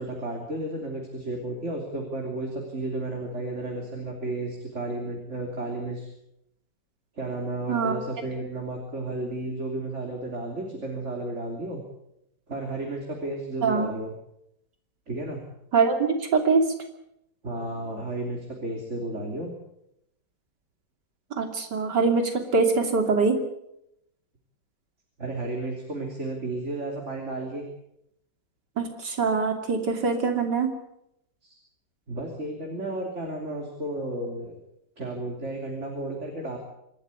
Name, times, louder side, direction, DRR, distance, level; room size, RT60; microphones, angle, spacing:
voice 1, 0.0-6.1 7.2-11.8 12.5-14.1 15.1-15.4 17.4-19.5 25.2-27.7 31.4-31.5 32.1-34.6 35.0-36.6, right 2 dB, 40° right, 1 dB, 3.5 m, -33 dB
voice 2, 13.6-13.9 15.7-16.7 21.4-23.4 28.8-30.7, right 4 dB, 65° right, 5 dB, 3.4 m, -23 dB
27.0 x 12.5 x 9.6 m, 0.81 s
omnidirectional pair, 2.0 m